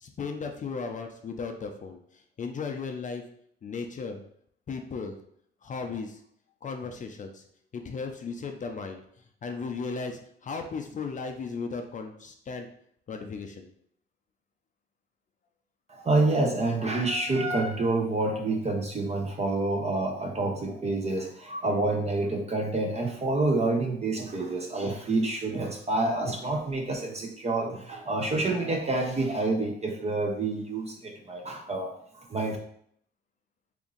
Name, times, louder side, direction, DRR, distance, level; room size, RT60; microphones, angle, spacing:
voice 1, 0.0-2.0 2.4-3.2 3.6-4.2 4.7-5.2 5.6-6.2 6.6-7.4 7.7-9.0 9.4-12.7 13.1-13.7, left 4 dB, 40° left, 5 dB, 0.4 m, -35 dB
voice 2, 15.9-31.9 32.3-32.6, right 2 dB, 35° right, 1 dB, 0.5 m, -28 dB
2.9 x 2.6 x 3.7 m, 0.68 s
cardioid pair, 90°, 20 cm